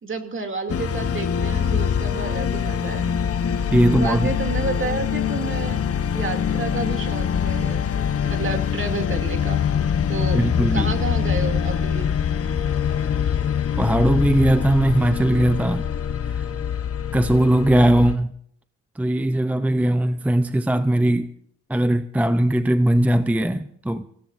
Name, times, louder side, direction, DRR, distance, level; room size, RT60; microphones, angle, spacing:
voice 1, 0.0-3.2 3.9-5.9 6.1-7.9 8.2-9.6 10.1-10.4 10.7-12.1, right 3 dB, 40° right, 2.6 m, -30 dB
sound 1, 0.7-18.2, left 8 dB, 50° left, 1.0 m, -24 dB
voice 2, 3.7-4.3 10.3-10.9 13.8-15.9 16.3-16.4 17.1-18.3 19.0-21.3 21.7-24.1, right 1 dB, 5° right, 0.6 m, -19 dB
27.0 x 16.5 x 2.6 m
cardioid pair, 105°, 30 cm